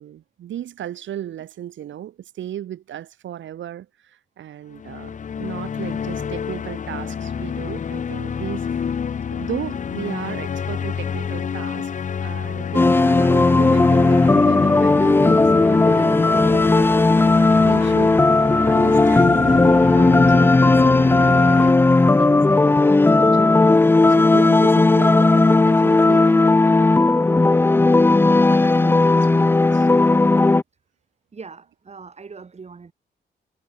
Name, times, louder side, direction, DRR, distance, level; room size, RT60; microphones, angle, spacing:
voice 1, 0.0-8.8 9.3-11.9 12.2-17.0 17.4-23.5 23.8-27.0 28.5-29.9, right 11 dB, 85° right, 3.5 m, -35 dB
sound 1, 4.7-21.7, left 7 dB, 40° left, 0.8 m, -28 dB
sound 2, 12.7-30.6, left 2 dB, 10° left, 0.4 m, -15 dB
voice 2, 31.3-32.9, right 5 dB, 35° right, 2.9 m, -40 dB
cardioid pair, 100°, 19 cm